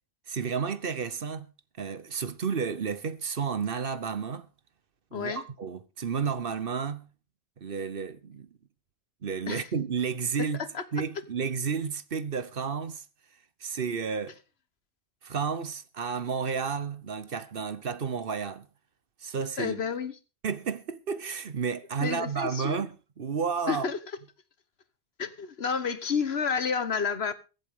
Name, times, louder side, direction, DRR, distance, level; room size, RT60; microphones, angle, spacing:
voice 1, 0.3-1.5 1.8-4.5 5.1-7.0 7.6-8.5 9.2-10.6 10.9-13.0 13.6-14.4 15.2-18.7 19.2-19.8 20.4-22.9 23.2-23.9, right 6 dB, 55° right, 1.1 m, -31 dB
voice 2, 5.1-5.4 9.5-9.7 10.6-10.8 19.6-20.2 22.0-22.8 23.7-24.0 25.2-27.3, left 6 dB, 70° left, 1.4 m, -30 dB
23.0 x 8.0 x 3.7 m
omnidirectional pair, 1.1 m